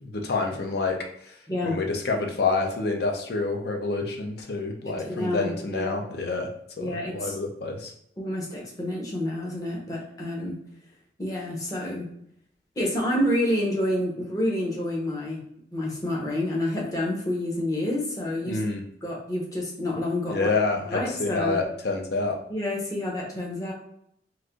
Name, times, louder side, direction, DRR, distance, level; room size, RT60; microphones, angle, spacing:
voice 1, 0.0-1.0 1.6-6.5 6.8-7.9 18.5-18.8 20.3-22.4, left 3 dB, 60° left, 2 dB, 0.5 m, -27 dB
voice 2, 1.5-1.8 4.8-5.9 6.8-7.4 8.2-10.6 11.2-12.1 12.8-15.4 15.7-18.7 19.0-20.5 20.9-21.6 22.5-23.7, left 1 dB, 20° left, -3 dB, 0.7 m, -28 dB
3.1 x 2.5 x 2.4 m, 0.71 s
head